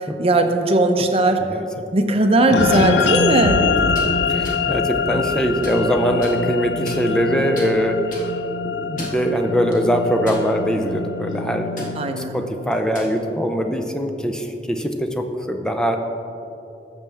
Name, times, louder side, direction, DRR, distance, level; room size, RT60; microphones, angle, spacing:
voice 1, 0.2-1.4 1.9-3.6 12.0-12.4, right 2 dB, 35° right, 5 dB, 0.7 m, -18 dB
sound 1, 2.5-13.1, left 5 dB, 65° left, 0.4 m, -24 dB
sound 2, 3.4-9.4, right 1 dB, 75° right, 0.6 m, -34 dB
voice 2, 3.5-8.0 8.6-16.0, equal, 5° left, 4 dB, 0.6 m, -22 dB
sound 3, 3.8-4.1 4.4-4.6 5.2-5.8 6.2-6.3 6.9-7.3 7.6-7.7 8.1-8.3 8.8-9.2 9.7-9.8 10.3-10.8 11.1-11.3 11.8-11.9 12.7-13.1, left 2 dB, 50° left, 1.7 m, -36 dB
12.5 x 7.4 x 3.5 m, 2.8 s
head